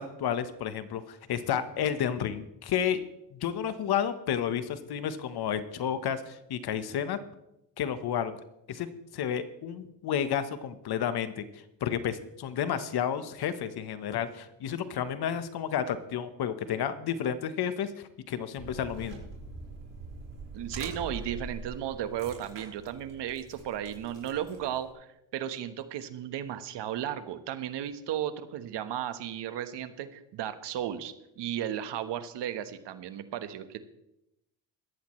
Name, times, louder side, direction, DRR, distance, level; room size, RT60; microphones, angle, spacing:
voice 1, 0.0-3.0 3.3-7.2 7.8-8.4 8.7-8.9 9.1-11.4 11.8-19.2, left 8 dB, 55° left, 11 dB, 1.3 m, -31 dB
sound 1, 18.6-24.9, right 3 dB, 25° right, 5.1 m, -44 dB
voice 2, 20.5-33.9, right 10 dB, 60° right, 10 dB, 1.4 m, -35 dB
17.5 x 13.0 x 3.2 m, 0.88 s
cardioid pair, 100°, 47 cm